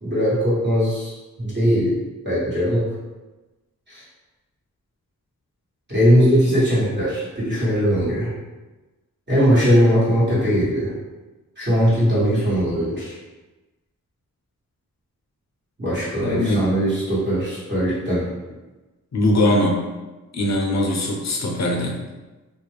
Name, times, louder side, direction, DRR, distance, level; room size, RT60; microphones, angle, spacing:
voice 1, 0.0-1.1 1.4-2.0 2.2-2.9 3.9-4.0 5.9-8.3 9.3-10.9 11.6-13.2 15.8-18.3, equal, 30° right, -11 dB, 1.2 m, -19 dB
voice 2, 16.2-16.7 19.1-19.8 20.3-21.9, left 1 dB, 50° left, 0 dB, 0.6 m, -21 dB
2.4 x 2.1 x 3.1 m, 1.2 s
cardioid pair, 60°, 35 cm